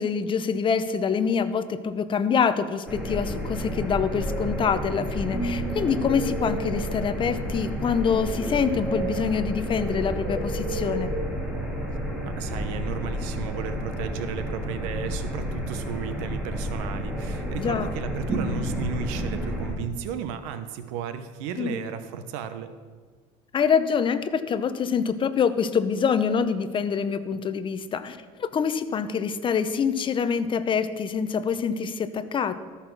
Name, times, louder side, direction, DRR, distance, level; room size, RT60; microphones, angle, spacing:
voice 1, 0.0-11.1 17.6-17.9 21.6-21.7 23.5-32.6, left 6 dB, 30° left, 11 dB, 0.7 m, -25 dB
sound 1, 2.9-19.7, equal, 5° right, 2.7 m, -30 dB
voice 2, 12.2-22.7, right 7 dB, 85° right, 10 dB, 0.9 m, -34 dB
13.5 x 5.7 x 6.1 m, 1.5 s
supercardioid pair, 105°, 16 cm